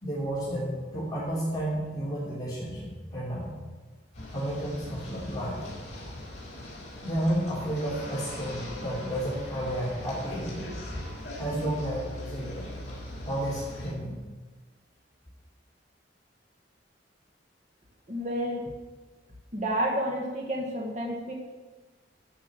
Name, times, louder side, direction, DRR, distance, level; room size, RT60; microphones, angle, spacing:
voice 1, 0.0-3.6 4.3-5.6 7.0-10.7 11.4-12.7 13.2-14.2, right 1 dB, 20° left, -7 dB, 3.0 m, -32 dB
sound 1, 4.1-13.9, left 1 dB, 40° left, 4.4 m, -40 dB
voice 2, 18.1-18.6 19.5-21.3, equal, 40° right, -1 dB, 1.5 m, -30 dB
13.5 x 5.7 x 7.5 m, 1.3 s
head